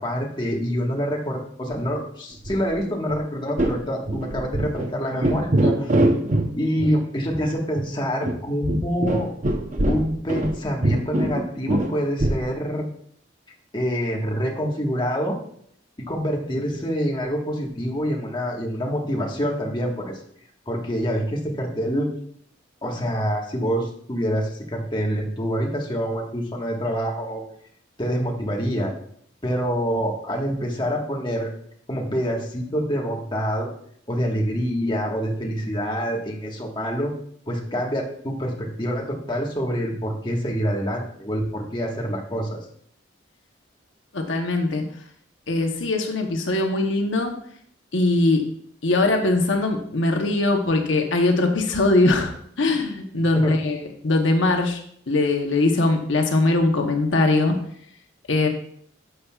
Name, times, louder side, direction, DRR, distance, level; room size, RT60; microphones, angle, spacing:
voice 1, 0.0-5.9 6.5-9.3 9.9-12.8 13.7-15.4 16.1-20.2 20.7-22.1 22.8-27.4 28.0-28.9 29.4-31.5 31.9-33.7 34.1-37.1 37.5-42.6 53.3-53.5, equal, 25° left, 0 dB, 1.4 m, -26 dB
sound 1, 2.4-2.8 3.1-3.2 3.6-3.8 4.1-4.9 5.2-6.5 6.8-6.9 7.3-7.4 7.8-7.9 8.2-10.6 10.8-12.4, right 1 dB, 40° right, 0.8 m, -23 dB
voice 2, 44.1-44.9 45.5-47.3 47.9-48.5 48.8-54.8 55.1-57.6 58.3-58.5, left 2 dB, 75° left, 4 dB, 0.9 m, -21 dB
11.0 x 6.7 x 2.4 m, 0.65 s
head